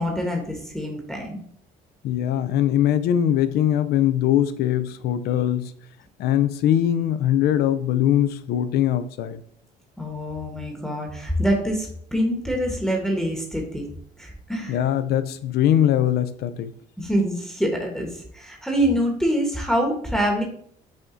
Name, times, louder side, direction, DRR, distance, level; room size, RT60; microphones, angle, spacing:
voice 1, 0.0-1.4 10.0-13.9 14.2-14.8 17.0-20.4, equal, 5° left, -1 dB, 1.0 m, -25 dB
voice 2, 2.0-5.7 6.2-9.4 14.7-16.7, left 11 dB, 70° left, 12 dB, 0.5 m, -21 dB
5.7 x 2.5 x 3.7 m, 0.62 s
cardioid pair, 110°, 17 cm